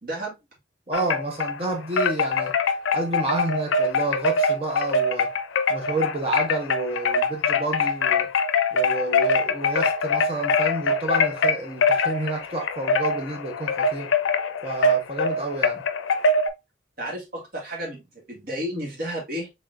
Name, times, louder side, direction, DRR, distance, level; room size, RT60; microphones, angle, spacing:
voice 1, 0.0-0.4 17.0-19.5, equal, 50° right, 1.7 m, -32 dB
Wind chime, 0.9-1.6 2.0-16.5, left 3 dB, 80° left, 0.5 m, -23 dB
voice 2, 0.9-2.6 2.9-5.3 5.7-8.3 8.7-14.1 14.6-15.8, right 2 dB, 30° right, 1.0 m, -29 dB
3.8 x 3.5 x 2.5 m
head